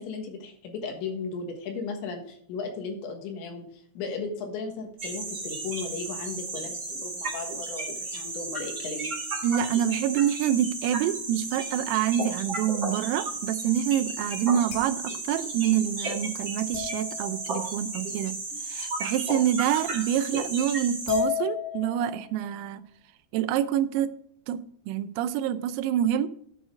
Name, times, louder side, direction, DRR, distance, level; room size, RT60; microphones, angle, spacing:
voice 1, 0.0-9.1, left 4 dB, 70° left, 3.4 m, -36 dB
sound 1, 5.0-21.2, right 2 dB, 30° right, 3.0 m, -34 dB
voice 2, 9.4-18.4 18.6-22.8 23.3-24.1 24.5-26.3, right 10 dB, 90° right, 3.3 m, -27 dB
sound 2, 14.7-15.1 16.7-17.8 19.9-20.0 21.1-22.3, left 9 dB, 55° left, 2.6 m, -32 dB
10.0 x 6.4 x 5.0 m
omnidirectional pair, 5.9 m